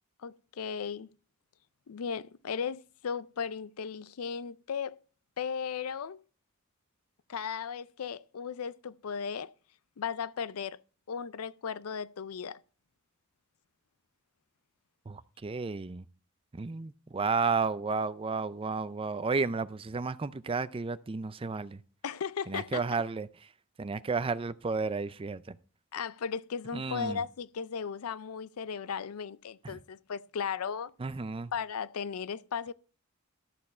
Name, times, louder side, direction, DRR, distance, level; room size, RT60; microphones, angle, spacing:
voice 1, 0.2-1.1 1.9-5.0 5.4-6.2 7.3-9.5 10.0-10.8 11.1-12.6 22.0-23.0 25.9-30.9 31.5-32.7, left 6 dB, 85° left, 0.5 m, -36 dB
voice 2, 15.1-16.0 16.5-21.8 22.5-23.3 23.8-25.6 26.7-27.2 29.6-29.8 31.0-31.5, right 4 dB, 25° right, 0.4 m, -32 dB
13.5 x 6.8 x 4.3 m
head